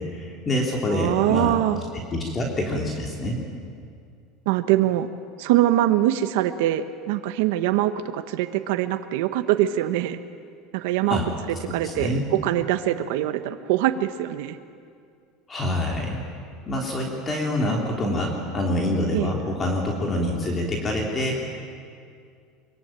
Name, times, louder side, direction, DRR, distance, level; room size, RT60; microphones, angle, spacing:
voice 1, 0.0-1.5 2.1-3.4 11.1-11.3 11.8-12.3 15.5-16.3 16.7-21.6, left 1 dB, 20° left, 0 dB, 3.3 m, -26 dB
voice 2, 0.9-1.8 4.5-5.1 5.4-10.2 10.7-11.2 11.7-14.6 19.1-19.3, right 13 dB, 75° right, 8 dB, 1.2 m, -23 dB
24.0 x 23.5 x 9.1 m, 2.3 s
supercardioid pair, 145°, 0 cm